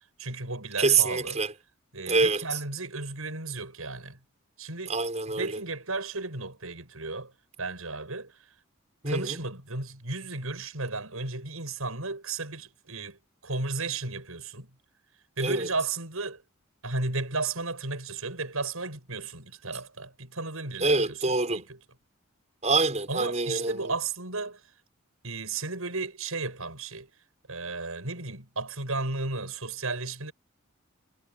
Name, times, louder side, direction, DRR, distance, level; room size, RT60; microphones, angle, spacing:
voice 1, 0.2-1.4 1.9-4.2 4.6-4.9 5.3-7.3 7.6-8.5 9.1-14.7 15.4-16.4 16.8-21.2 21.5-21.8 23.1-24.6 25.2-27.1 27.5-30.3, right 3 dB, 85° right, 7.1 m, -34 dB
voice 2, 0.8-1.5 2.1-2.4 4.9-5.5 9.0-9.4 15.4-15.7 20.8-21.6 22.6-23.9, right 3 dB, 30° right, 6.7 m, -25 dB
head